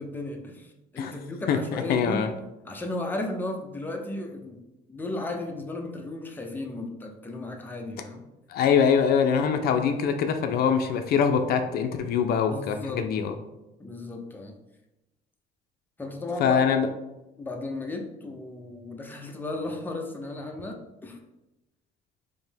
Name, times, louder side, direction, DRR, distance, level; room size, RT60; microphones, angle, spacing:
voice 1, 0.0-2.2 2.6-4.6 4.9-8.2 12.5-13.0 13.8-14.5 16.0-16.6 17.4-21.2, left 2 dB, 10° left, 2 dB, 0.5 m, -35 dB
voice 2, 1.5-2.3 8.5-13.3 16.4-16.9, left 7 dB, 65° left, 7 dB, 0.4 m, -23 dB
5.0 x 2.0 x 3.3 m, 0.98 s
cardioid pair, 110°, 17 cm